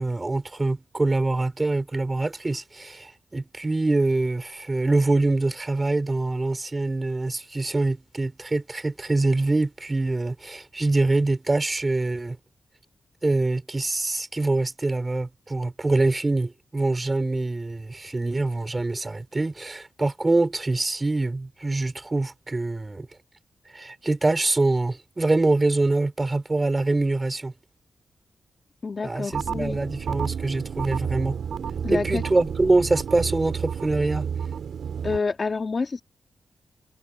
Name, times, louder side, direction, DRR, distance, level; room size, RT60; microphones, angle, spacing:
voice 1, 0.0-12.4 13.2-23.1 23.7-27.5 29.0-31.4 31.9-34.3, right 2 dB, 20° right, 4.7 m, -24 dB
voice 2, 28.8-29.8 31.8-32.2 35.0-36.0, left 4 dB, 35° left, 1.8 m, -28 dB
sound 1, 29.3-35.2, right 7 dB, 75° right, 2.7 m, -31 dB
wide cardioid pair, 145°, 0 cm